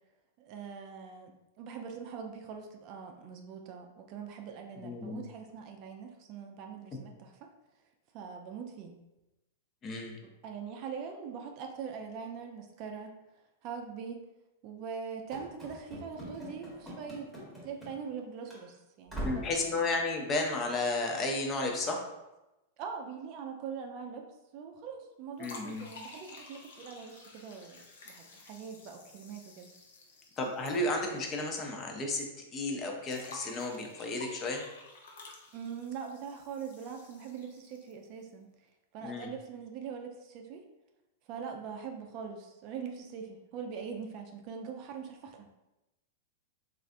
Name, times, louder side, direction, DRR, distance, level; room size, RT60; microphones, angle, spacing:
voice 1, 0.4-1.3 1.6-7.3 8.1-8.9 10.4-13.1 13.6-14.2 14.6-17.3 17.6-19.5 22.8-24.3 24.5-29.7 35.5-38.5 38.9-40.6 41.3-45.6, right 6 dB, 45° right, 3 dB, 0.4 m, -42 dB
voice 2, 4.8-5.2 9.8-10.2 19.2-22.0 25.4-25.9 30.4-32.3 32.5-34.6 39.0-39.3, left 2 dB, 30° left, 1 dB, 0.5 m, -33 dB
Run / Slam, 15.3-18.2 18.5-18.6 19.1-19.6, right 1 dB, ahead, 1.0 m, -42 dB
sound 1, 25.4-31.6 31.8-31.9 33.0-38.1, left 3 dB, 80° left, 0.5 m, -51 dB
3.2 x 2.4 x 2.5 m, 0.97 s
hypercardioid pair, 120°, 0 cm